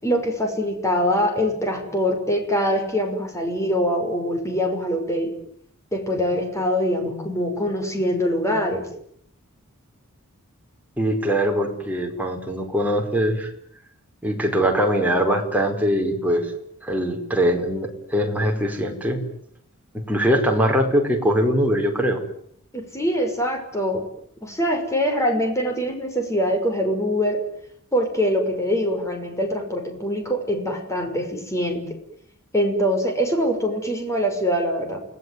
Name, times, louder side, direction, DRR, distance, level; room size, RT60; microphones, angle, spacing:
voice 1, 0.0-5.3 5.9-8.9 22.7-24.0 24.4-27.4 27.9-31.8 32.5-35.0, equal, 15° left, 4 dB, 6.0 m, -23 dB
voice 2, 11.0-13.5 14.2-16.5 16.8-19.2 19.9-22.2, equal, 5° right, 1 dB, 4.9 m, -22 dB
30.0 x 19.5 x 9.5 m, 0.70 s
head